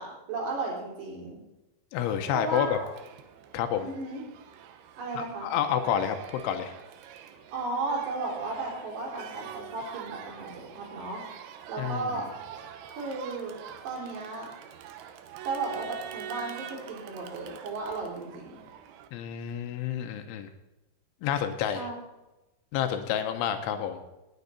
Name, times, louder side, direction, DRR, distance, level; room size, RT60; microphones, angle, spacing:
voice 1, 0.0-1.4 2.3-2.9 3.8-4.2 5.0-5.5 7.5-11.2 11.7-12.3 13.0-13.6 13.8-14.5 15.5-18.6 21.7-21.9, right 3 dB, 60° right, -2 dB, 5.3 m, -34 dB
voice 2, 1.9-2.8 3.5-3.9 5.2-6.7 11.8-12.1 19.1-20.5 21.2-21.9 22.7-24.0, left 9 dB, 85° left, 7 dB, 3.2 m, -29 dB
Crowd, 2.0-19.1, right 8 dB, 85° right, 3.3 m, -45 dB
18.5 x 9.5 x 4.1 m, 0.99 s
omnidirectional pair, 5.6 m